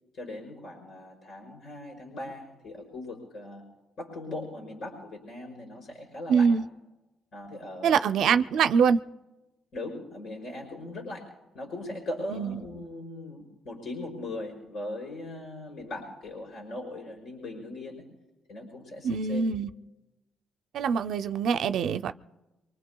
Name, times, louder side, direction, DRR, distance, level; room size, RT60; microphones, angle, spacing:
voice 1, 0.1-3.6 4.0-6.5 7.3-8.3 9.7-18.1 18.5-19.5, left 1 dB, 60° left, 1 dB, 5.1 m, -39 dB
voice 2, 6.3-6.6 7.8-9.0 12.3-12.6 19.0-19.7 20.7-22.1, right 6 dB, 75° right, 11 dB, 0.4 m, -24 dB
24.5 x 24.5 x 2.2 m, 1.0 s
cardioid pair, 90°, 0 cm